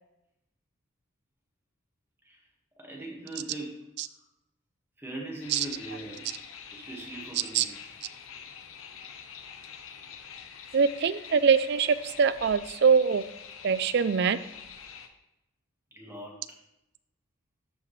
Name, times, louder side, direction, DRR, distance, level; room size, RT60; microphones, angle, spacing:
voice 1, 2.8-3.8 5.0-6.3 6.7-7.7 15.9-16.4, right 1 dB, 10° right, -2 dB, 1.6 m, -40 dB
sound 1, 5.4-15.1, left 7 dB, 80° left, 0.7 m, -46 dB
voice 2, 10.7-13.2 13.6-14.4, right 6 dB, 55° right, 14 dB, 0.4 m, -23 dB
12.5 x 5.0 x 3.2 m, 0.88 s
head